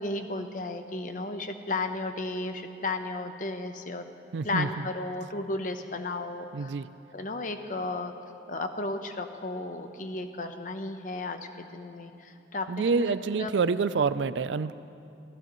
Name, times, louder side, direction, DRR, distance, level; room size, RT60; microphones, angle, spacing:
voice 1, 0.0-4.1 4.4-6.7 7.1-8.1 8.5-13.5, left 2 dB, 45° left, 7 dB, 0.9 m, -34 dB
voice 2, 4.3-4.7 6.5-6.9 12.7-14.7, right 5 dB, 75° right, 15 dB, 0.4 m, -27 dB
27.0 x 15.5 x 3.1 m, 2.8 s
head